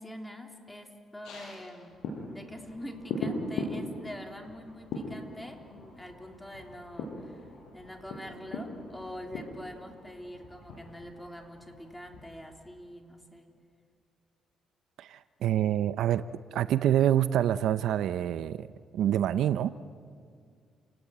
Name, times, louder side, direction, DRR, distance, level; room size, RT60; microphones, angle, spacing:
voice 1, 0.0-2.0 2.3-13.5, equal, 5° left, 3 dB, 3.3 m, -45 dB
sound 1, 1.2-12.9 13.3-13.4, left 2 dB, 85° left, 7.0 m, -40 dB
voice 2, 15.0-16.2 16.5-18.7 18.9-19.7, right 11 dB, 80° right, 14 dB, 0.6 m, -26 dB
29.0 x 18.5 x 8.7 m, 2.1 s
cardioid pair, 90°, 0 cm